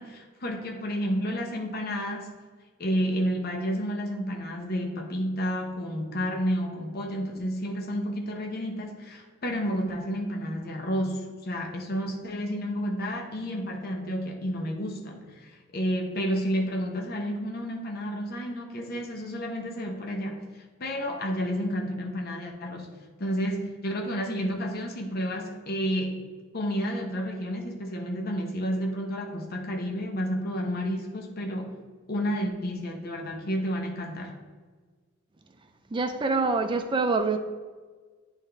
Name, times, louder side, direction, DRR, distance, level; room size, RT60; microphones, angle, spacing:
voice 1, 0.0-2.3 2.8-22.9 23.2-31.8 32.1-34.4, equal, 50° left, 2 dB, 0.8 m, -31 dB
voice 2, 35.9-37.4, right 3 dB, 25° right, 6 dB, 0.4 m, -25 dB
9.1 x 3.6 x 3.3 m, 1.4 s
head